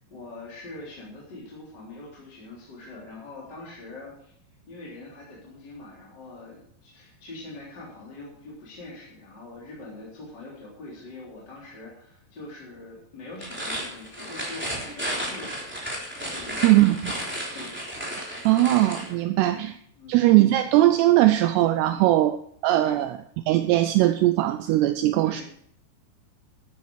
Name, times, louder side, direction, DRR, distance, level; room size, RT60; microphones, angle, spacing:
voice 1, 0.1-4.3 4.7-15.6 16.1-16.7 17.5-17.8 19.4-19.7 20.0-20.2 21.9-22.2 22.8-23.1 25.2-25.4, left 2 dB, 25° left, -6 dB, 3.5 m, -43 dB
sound 1, 13.3-19.1, equal, 5° right, 2.4 m, -33 dB
voice 2, 16.6-17.1 18.5-19.8 20.1-22.4 22.6-23.2 23.5-25.4, right 15 dB, 85° right, 10 dB, 2.3 m, -20 dB
12.5 x 10.0 x 4.7 m, 0.69 s
omnidirectional pair, 5.4 m